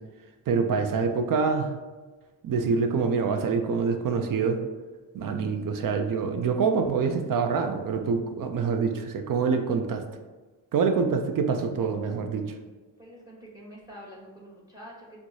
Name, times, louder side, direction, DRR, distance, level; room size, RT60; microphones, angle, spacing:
voice 1, 0.5-1.8 2.4-4.6 5.1-10.0 10.7-12.4, right 5 dB, 45° right, 6 dB, 0.5 m, -26 dB
voice 2, 13.0-15.2, equal, 10° right, -4 dB, 1.1 m, -46 dB
4.4 x 2.1 x 2.6 m, 1.3 s
supercardioid pair, 55°, 49 cm